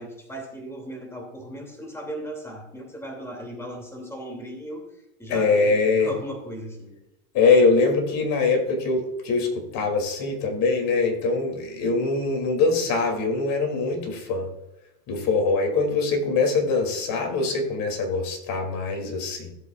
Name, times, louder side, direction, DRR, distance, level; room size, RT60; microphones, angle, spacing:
voice 1, 0.0-4.9 5.2-7.0, right 1 dB, 5° left, 1 dB, 2.7 m, -37 dB
voice 2, 5.3-6.1 7.3-14.5 15.1-19.5, left 4 dB, 45° left, 2 dB, 3.0 m, -23 dB
16.0 x 8.2 x 2.5 m, 0.87 s
supercardioid pair, 120°, 45 cm